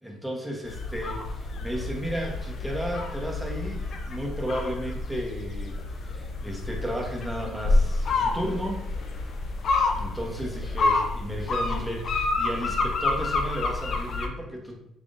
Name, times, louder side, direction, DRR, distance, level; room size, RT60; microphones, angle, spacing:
voice 1, 0.0-8.8 9.9-14.8, equal, ahead, -1 dB, 1.0 m, -34 dB
sound 1, 0.7-14.3, left 3 dB, 55° left, 0.5 m, -28 dB
3.9 x 3.4 x 2.5 m, 0.79 s
supercardioid pair, 75°, 0 cm